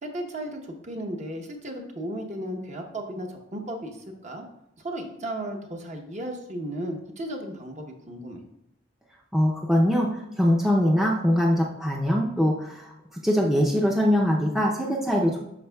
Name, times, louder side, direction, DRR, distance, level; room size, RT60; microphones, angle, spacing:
voice 1, 0.0-4.5 4.8-8.4, right 1 dB, 40° right, 2 dB, 0.9 m, -35 dB
voice 2, 9.3-12.9 13.2-15.4, equal, ahead, -2 dB, 0.6 m, -22 dB
12.0 x 4.5 x 2.3 m, 0.82 s
head